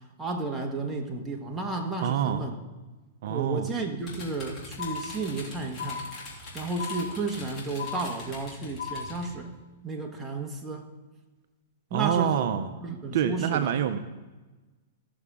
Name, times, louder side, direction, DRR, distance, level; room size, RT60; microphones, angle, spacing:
voice 1, 0.2-2.6 3.3-6.0 6.5-9.5 9.8-10.9 11.9-12.5 12.8-13.7, right 3 dB, 10° right, 1 dB, 1.4 m, -32 dB
voice 2, 2.0-2.4 3.2-3.7 11.9-12.7 13.1-14.0, right 9 dB, 60° right, 9 dB, 0.6 m, -26 dB
sound 1, 4.0-9.3, left 2 dB, 25° left, 2.9 m, -43 dB
sound 2, 4.8-5.5 5.8-6.5 6.8-7.5 7.8-8.5 8.8-9.5, left 6 dB, 75° left, 2.9 m, -37 dB
15.0 x 6.9 x 3.7 m, 1.2 s
hypercardioid pair, 130°, 0 cm